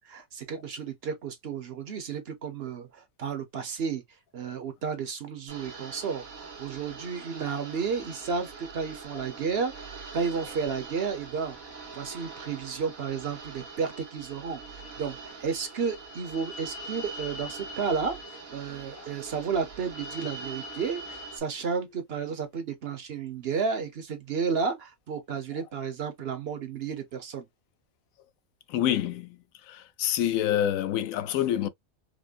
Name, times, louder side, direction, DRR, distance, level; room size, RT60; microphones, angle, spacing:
voice 1, 0.0-4.0 4.3-11.6 11.9-18.2 18.5-27.5, right 5 dB, 55° right, 0.9 m, -32 dB
sound 1, 5.5-21.4, right 3 dB, 90° right, 1.8 m, -43 dB
voice 2, 28.7-29.3 30.0-31.7, left 11 dB, 85° left, 1.0 m, -26 dB
5.0 x 2.1 x 2.4 m
omnidirectional pair, 1.4 m